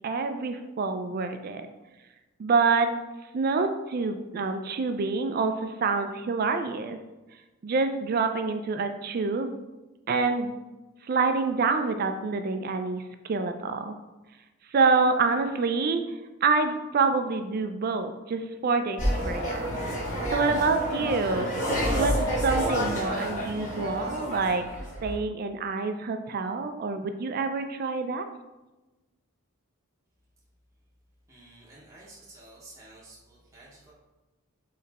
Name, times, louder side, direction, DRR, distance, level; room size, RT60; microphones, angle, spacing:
voice 1, 0.0-1.7 2.4-2.9 3.3-7.0 7.6-9.5 10.1-10.5 11.1-14.0 14.7-16.0 16.4-19.0 19.2-19.8 20.3-21.5 21.9-24.7 25.0-28.3, right 4 dB, 40° right, 8 dB, 0.3 m, -27 dB
sound 1, 19.0-25.1, equal, 35° left, 1.4 m, -29 dB
voice 2, 31.3-33.9, right 2 dB, 15° right, -6 dB, 0.8 m, -51 dB
4.0 x 3.2 x 4.1 m, 1.1 s
head